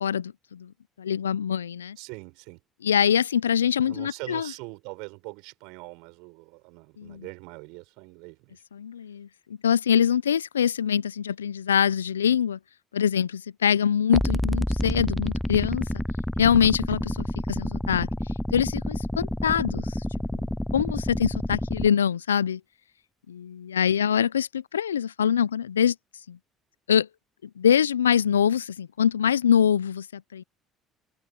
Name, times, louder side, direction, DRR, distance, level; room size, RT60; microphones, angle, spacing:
voice 1, 0.0-0.7 1.0-2.0 2.8-4.5 7.0-7.2 8.7-9.3 9.6-12.6 12.9-15.8 16.4-18.1 18.5-20.0 20.3-20.4 20.7-22.6 23.3-25.9 26.3-26.4 26.9-27.1 27.6-30.4, left 8 dB, 90° left, 0.5 m, -24 dB
voice 2, 2.0-2.6 3.8-8.6, right 29 dB, 70° right, 6.9 m, -42 dB
sound 1, 14.1-21.9, left 1 dB, 5° left, 0.6 m, -29 dB
hypercardioid pair, 55°, 0 cm